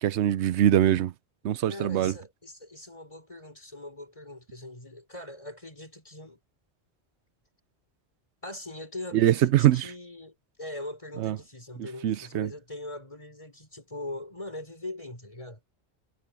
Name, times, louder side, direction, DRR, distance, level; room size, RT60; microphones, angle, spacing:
voice 1, 0.0-1.1 1.4-2.1 9.1-9.8 11.2-11.4 12.0-12.5, right 12 dB, 85° right, 0.9 m, -23 dB
voice 2, 1.7-6.4 8.4-15.6, left 2 dB, 30° left, 4.4 m, -41 dB
omnidirectional pair, 1.1 m